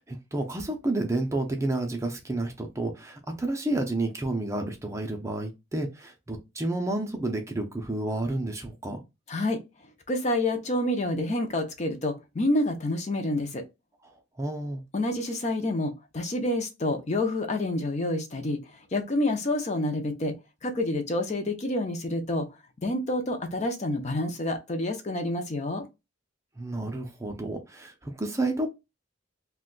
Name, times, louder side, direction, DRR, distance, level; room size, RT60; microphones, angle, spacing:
voice 1, 0.0-9.0 14.4-14.8 26.6-28.7, right 2 dB, 15° right, 0.5 m, -30 dB
voice 2, 9.3-9.6 10.1-13.6 14.9-18.6 18.9-20.3 20.6-22.5 22.8-25.8, left 1 dB, 35° left, 0.5 m, -28 dB
2.6 x 2.2 x 3.8 m
head